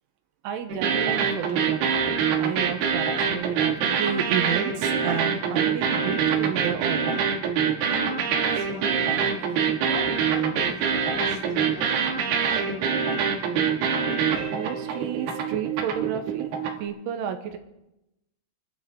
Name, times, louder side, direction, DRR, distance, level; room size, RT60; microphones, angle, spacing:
voice 1, 0.4-7.5 9.2-9.6 14.5-16.5 16.8-17.6, right 9 dB, 85° right, 6 dB, 3.5 m, -32 dB
sound 1, 0.7-16.9, right 6 dB, 65° right, 3.0 m, -25 dB
voice 2, 7.9-12.9, left 3 dB, 65° left, 0 dB, 1.6 m, -41 dB
26.0 x 12.0 x 3.9 m, 0.91 s
omnidirectional pair, 5.5 m